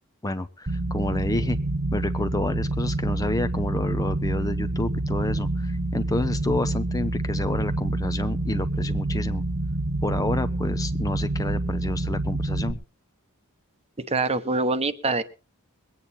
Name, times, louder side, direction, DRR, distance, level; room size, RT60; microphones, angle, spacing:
voice 1, 0.2-1.6 1.9-9.4 10.0-12.8, left 2 dB, 15° left, 11 dB, 0.6 m, -29 dB
sound 1, 0.7-12.7, right 2 dB, 45° right, 1.3 m, -27 dB
voice 2, 14.1-15.2, right 3 dB, 30° right, 11 dB, 0.9 m, -24 dB
22.0 x 9.1 x 4.1 m, 0.34 s
head